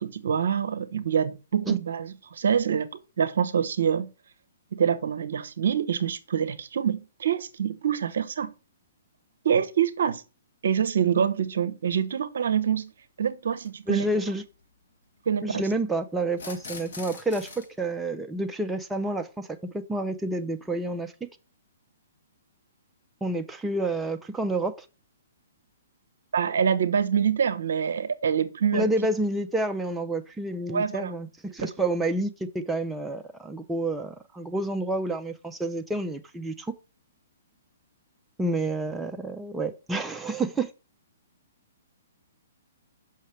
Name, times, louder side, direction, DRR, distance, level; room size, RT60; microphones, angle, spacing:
voice 1, 0.0-4.1 4.7-8.5 9.4-10.2 10.6-12.9 13.2-14.1 15.3-15.6 26.3-28.9 30.7-31.1, right 8 dB, 65° right, 0.7 m, -26 dB
sound 1, 12.0-12.1 13.5-13.7 16.3-17.7, left 4 dB, 65° left, 2.2 m, -42 dB
voice 2, 13.9-14.4 15.4-19.5 19.7-21.3 23.2-24.9 28.7-36.7 38.4-40.7, right 2 dB, 5° right, 0.5 m, -29 dB
6.4 x 5.7 x 3.2 m
figure-of-eight pair, 125°, 0 cm